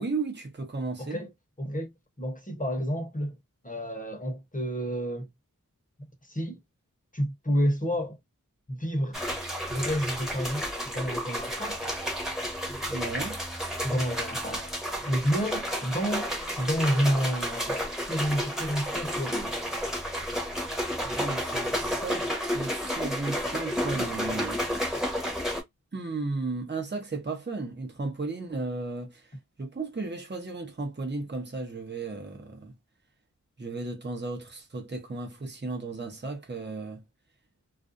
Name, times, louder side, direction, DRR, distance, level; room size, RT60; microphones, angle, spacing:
voice 1, 0.0-1.2 12.9-13.4 21.0-22.3 22.5-24.6 25.9-29.3 29.6-32.7 33.6-37.0, right 3 dB, 35° right, 0.8 m, -34 dB
voice 2, 1.0-1.3 1.6-1.9 2.2-3.4 3.6-5.3 6.0-6.6 7.1-8.2 8.7-9.2 9.7-12.0 13.8-14.7 15.1-16.3 16.6-19.6, equal, 25° left, 0.9 m, -30 dB
sound 1, 9.1-25.6, equal, ahead, 1.0 m, -31 dB
2.4 x 2.3 x 2.5 m
wide cardioid pair, 55°, 32 cm